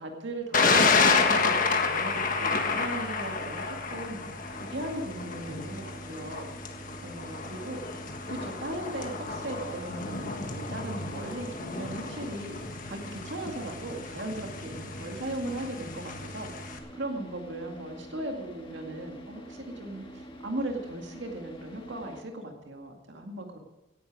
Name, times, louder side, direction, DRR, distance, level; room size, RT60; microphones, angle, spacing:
voice 1, 0.0-6.5 7.0-7.8 8.3-23.6, right 1 dB, 70° right, 2 dB, 2.1 m, -38 dB
Thunder, 0.5-16.8, left 4 dB, 45° left, 1.6 m, -30 dB
Car / Idling, 4.4-22.2, right 1 dB, 25° left, 1.9 m, -47 dB
17.5 x 10.5 x 4.8 m, 0.98 s
head